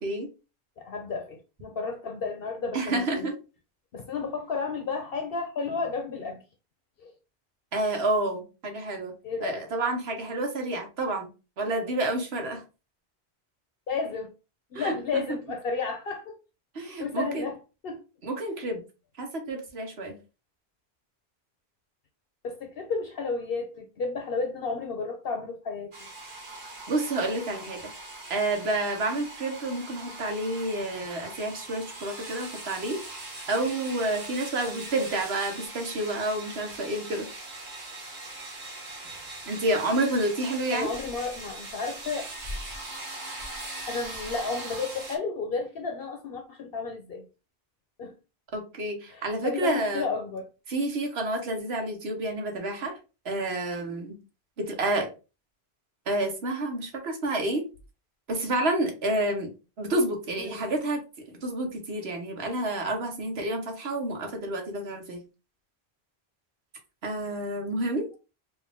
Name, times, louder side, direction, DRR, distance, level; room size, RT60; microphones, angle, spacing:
voice 1, 0.8-3.3 3.9-6.4 7.0-7.1 9.2-9.6 13.9-14.3 14.7-16.4 16.8-17.6 17.8-18.0 22.4-25.9 40.7-42.2 43.9-47.3 48.0-48.1 49.1-50.5 60.4-60.7, left 4 dB, 65° left, 0.8 m, -32 dB
voice 2, 2.7-3.3 7.7-9.1 9.4-11.3 11.6-12.6 14.7-15.2 16.7-17.5 18.2-18.8 19.2-20.1 26.9-27.8 28.3-33.2 33.5-37.3 39.5-40.9 48.5-50.1 50.7-52.9 53.2-54.1 54.7-55.1 56.1-57.6 58.3-59.5 59.8-61.0 61.3-65.2 67.0-68.1, right 2 dB, 75° right, 1.3 m, -29 dB
sound 1, 25.9-45.2, right 2 dB, 50° right, 1.4 m, -40 dB
4.6 x 2.5 x 3.5 m
omnidirectional pair, 1.1 m